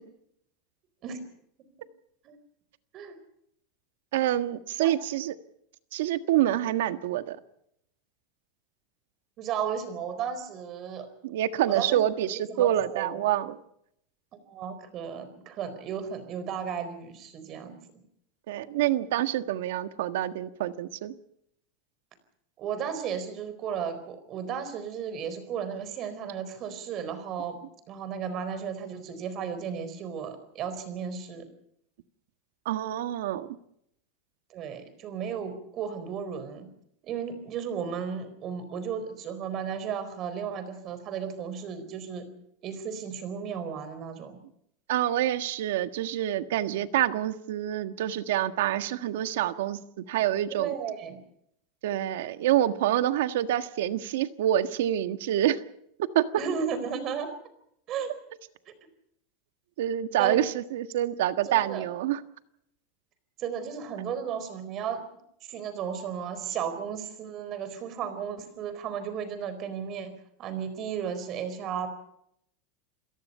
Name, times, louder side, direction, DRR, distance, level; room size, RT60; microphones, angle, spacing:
voice 1, 4.1-5.3 5.9-7.4 11.2-13.6 18.5-21.1 32.6-33.6 44.9-50.7 51.8-55.6 56.0-56.3 59.8-62.2, right 12 dB, 80° right, 10 dB, 1.5 m, -27 dB
voice 2, 9.4-11.1 11.7-12.0 12.2-13.2 14.5-17.8 22.6-27.6 27.9-31.5 34.5-36.7 37.0-42.3 42.6-44.4 50.5-51.2 56.4-57.3 57.9-58.1 58.7-58.8 60.2-60.4 61.5-61.8 63.4-65.0 65.5-70.1 70.4-71.9, right 7 dB, 35° right, 11 dB, 4.3 m, -34 dB
28.0 x 18.0 x 5.6 m, 0.74 s
supercardioid pair, 155°, 0 cm